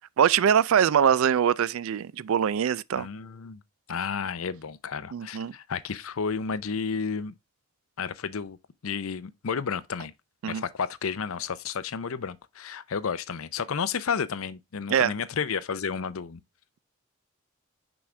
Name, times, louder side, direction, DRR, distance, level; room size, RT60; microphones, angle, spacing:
voice 1, 0.2-3.1 5.1-5.5 10.4-10.6 14.9-15.1, right 8 dB, 80° right, 0.4 m, -23 dB
voice 2, 2.9-3.6 3.9-7.3 8.0-8.6 8.8-10.1 10.5-16.4, left 6 dB, 85° left, 0.6 m, -32 dB
6.1 x 4.9 x 3.2 m
head